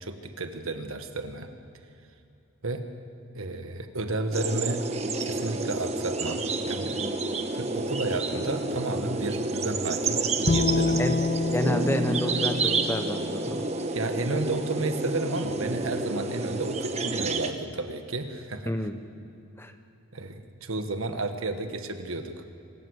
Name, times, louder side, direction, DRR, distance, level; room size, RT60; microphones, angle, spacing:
voice 1, 0.0-1.5 2.6-2.8 3.3-4.8 5.2-7.0 7.5-11.0 13.9-18.7 20.1-22.4, right 2 dB, 65° right, 7 dB, 1.6 m, -32 dB
sound 1, 4.3-17.5, right 3 dB, 30° right, 1.1 m, -29 dB
Bowed string instrument, 10.5-13.7, left 3 dB, 40° left, 0.9 m, -28 dB
voice 2, 11.5-13.7 18.7-19.0 19.6-19.7, left 1 dB, 10° left, 7 dB, 0.9 m, -29 dB
26.5 x 13.0 x 8.1 m, 2.8 s
head